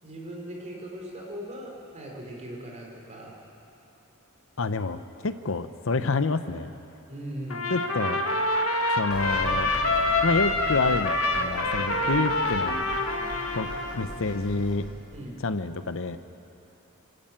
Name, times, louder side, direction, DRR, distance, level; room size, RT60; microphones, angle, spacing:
voice 1, 0.0-3.4 7.1-7.9 12.0-12.1 15.1-15.4, right 1 dB, 35° right, -2 dB, 4.3 m, -39 dB
voice 2, 4.6-6.7 7.7-8.2 9.0-9.7 10.2-12.9 13.5-14.9 15.4-16.2, left 3 dB, 65° left, 11 dB, 0.8 m, -28 dB
Trumpet, 7.5-14.1, left 2 dB, 85° left, 1.6 m, -26 dB
sound 1, 9.1-14.7, equal, 20° left, 6.9 m, -40 dB
25.0 x 13.0 x 9.0 m, 2.8 s
head